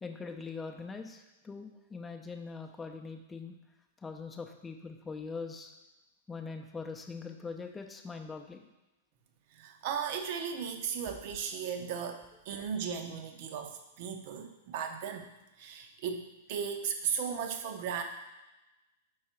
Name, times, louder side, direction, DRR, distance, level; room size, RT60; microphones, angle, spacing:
voice 1, 0.0-3.5 4.0-5.7 6.3-8.6, left 4 dB, 15° left, 3 dB, 0.6 m, -42 dB
voice 2, 9.6-15.3 15.6-18.0, right 7 dB, 55° right, 6 dB, 0.7 m, -36 dB
4.7 x 4.7 x 4.4 m, 1.0 s
hypercardioid pair, 110°, 0 cm